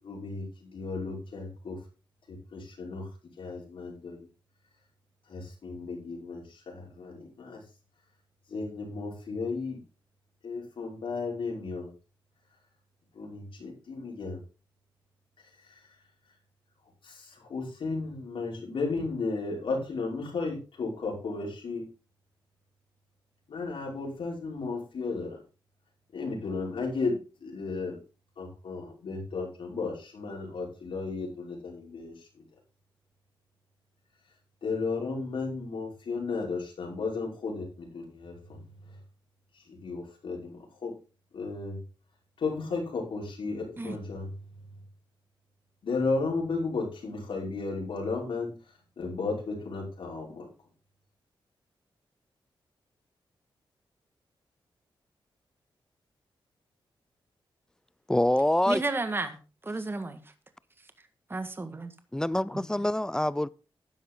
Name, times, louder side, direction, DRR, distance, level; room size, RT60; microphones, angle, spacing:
voice 1, 0.0-1.8 2.3-3.1 3.4-4.3 5.3-7.6 8.5-9.8 10.4-11.9 13.1-14.4 15.4-15.8 17.0-21.9 23.5-25.4 26.1-28.0 28.4-32.4 34.6-39.0 39.5-40.9 41.3-41.8 42.4-44.4 45.8-48.5 49.0-50.5, left 3 dB, 75° left, 5.7 m, -34 dB
voice 2, 58.1-58.8 62.1-63.5, left 1 dB, 5° left, 0.5 m, -25 dB
voice 3, 58.7-60.2 61.3-61.9 62.5-62.6, right 2 dB, 25° right, 1.7 m, -33 dB
13.0 x 10.0 x 3.8 m
wide cardioid pair, 100°, 9 cm